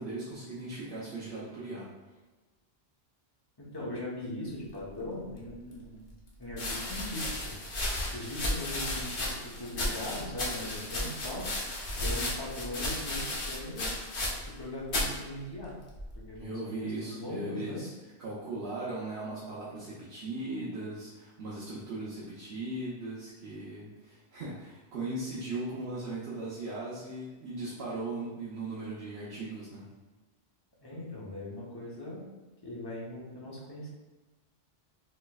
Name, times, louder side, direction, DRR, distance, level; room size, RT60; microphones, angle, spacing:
voice 1, 0.0-1.9 16.4-17.9 18.2-29.9, right 2 dB, 70° right, -9 dB, 0.9 m, -38 dB
voice 2, 3.6-6.1 6.4-7.5 8.1-11.5 12.0-14.0 14.6-15.8 16.1-17.8 30.8-32.3 32.6-33.9, left 1 dB, 25° left, -5 dB, 0.8 m, -40 dB
sound 1, 5.4-5.5 6.5-14.6 14.9-15.2 15.9-16.4, left 1 dB, 55° left, 0.9 m, -34 dB
4.2 x 3.0 x 2.3 m, 1.2 s
omnidirectional pair, 1.1 m